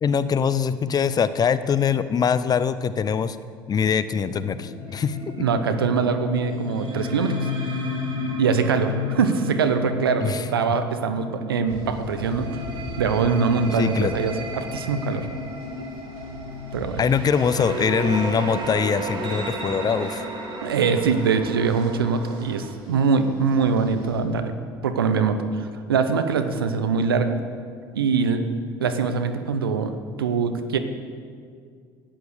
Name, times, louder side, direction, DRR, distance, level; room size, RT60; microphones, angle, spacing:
voice 1, 0.0-3.4 3.7-5.5 10.2-10.4 13.7-14.1 17.0-20.2, left 7 dB, 35° left, 14 dB, 0.6 m, -23 dB
sound 1, 3.9-19.4, left 4 dB, 80° left, 1.6 m, -34 dB
sound 2, 4.9-5.2 6.7-11.4 12.2-22.7, right 3 dB, 40° right, 2.2 m, -36 dB
voice 2, 5.4-7.3 8.4-12.5 13.0-15.3 16.7-17.0 20.6-24.5 24.8-27.4 27.9-28.4 28.8-30.8, right 5 dB, 90° right, 8 dB, 0.8 m, -23 dB
sound 3, 11.6-24.2, right 1 dB, 60° right, 3.6 m, -44 dB
11.5 x 9.6 x 6.5 m, 2.1 s
hypercardioid pair, 70°, 12 cm